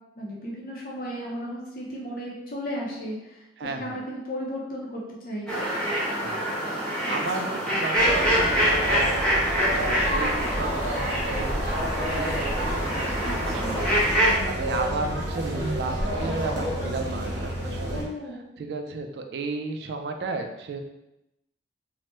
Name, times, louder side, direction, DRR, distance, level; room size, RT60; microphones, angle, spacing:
voice 1, 0.2-5.5 13.2-13.7 17.9-18.4, equal, 50° left, -4 dB, 0.6 m, -35 dB
voice 2, 3.6-4.0 6.1-6.5 6.9-9.4 9.7-11.9 12.3-18.0 18.6-20.8, right 3 dB, 70° right, 5 dB, 0.3 m, -34 dB
sound 1, 5.5-14.3, equal, 5° left, 0.6 m, -25 dB
sound 2, 7.3-7.4 7.9-8.0 8.5-8.6 9.1-9.2 9.7-9.8 10.3-10.4 10.9-11.0 11.5-11.6 12.1-12.2 12.7-12.8 13.3-13.4 13.8-13.9 14.4-14.6 15.0-15.1 15.6-15.7 16.2-16.3 16.8-16.9 17.4-17.5, left 1 dB, 30° right, 0.9 m, -43 dB
sound 3, 7.9-18.0, equal, 85° right, 0.8 m, -29 dB
3.2 x 2.1 x 3.0 m, 0.90 s
head